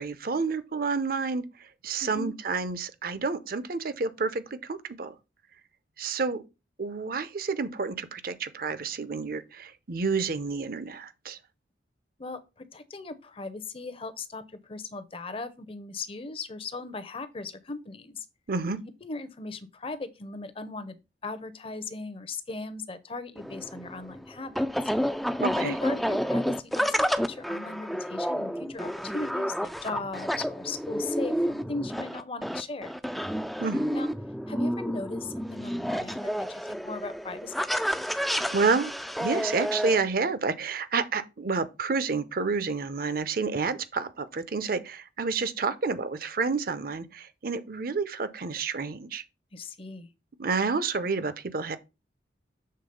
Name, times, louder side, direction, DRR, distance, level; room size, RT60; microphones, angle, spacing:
voice 1, 0.0-1.4 1.8-5.1 6.0-6.4 6.8-11.4 18.5-18.8 25.4-25.8 33.6-33.8 38.5-38.9 39.2-49.2 50.4-51.8, right 4 dB, 55° right, 0.7 m, -29 dB
voice 2, 2.0-2.3 12.2-18.2 19.0-24.7 25.6-32.9 33.9-34.1 34.5-37.7 49.5-50.1, left 3 dB, 30° left, 0.7 m, -38 dB
sound 1, 23.4-40.0, equal, ahead, 0.3 m, -30 dB
6.7 x 3.6 x 5.2 m
head